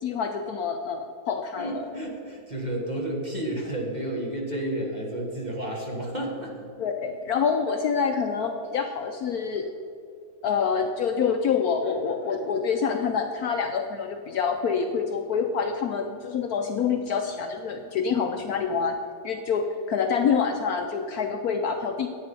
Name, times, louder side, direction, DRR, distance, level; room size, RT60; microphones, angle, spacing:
voice 1, 0.0-1.9 6.8-9.7 10.4-19.0 19.2-22.1, left 6 dB, 70° left, 5 dB, 1.0 m, -26 dB
voice 2, 1.6-6.6, right 1 dB, 25° right, -1 dB, 1.3 m, -31 dB
10.5 x 8.8 x 5.2 m, 2.5 s
omnidirectional pair, 2.0 m